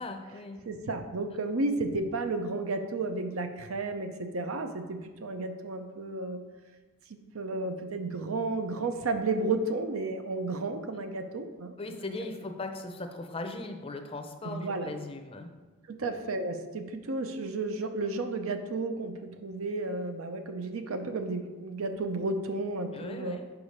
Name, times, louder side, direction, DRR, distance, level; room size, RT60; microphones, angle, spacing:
voice 1, 0.0-0.6 11.8-15.5 22.9-23.5, left 2 dB, 25° left, 6 dB, 0.5 m, -38 dB
voice 2, 0.6-6.4 7.3-11.8 14.4-14.9 15.9-23.4, right 2 dB, 75° right, 7 dB, 0.6 m, -32 dB
4.8 x 4.8 x 5.4 m, 1.3 s
head